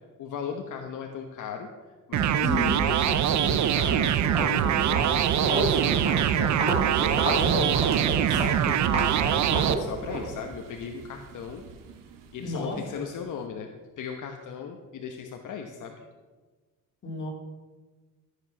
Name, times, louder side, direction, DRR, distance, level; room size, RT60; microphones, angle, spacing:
voice 1, 0.2-1.7 2.1-7.6 8.2-11.6 12.3-13.7 14.0-16.0, left 7 dB, 65° left, 3 dB, 1.1 m, -38 dB
sound 1, 2.1-9.7, right 10 dB, 60° right, 0.7 m, -23 dB
voice 2, 2.4-2.8 7.4-7.8 12.4-13.0 17.0-17.3, left 3 dB, 35° left, -1 dB, 3.3 m, -31 dB
Walk footsteps, 3.6-3.9 4.2-10.3, right 1 dB, 20° right, 3.0 m, -31 dB
sound 2, 6.9-13.5, right 6 dB, 85° right, 1.3 m, -45 dB
13.5 x 8.0 x 6.1 m, 1.3 s
cardioid pair, 145°, 33 cm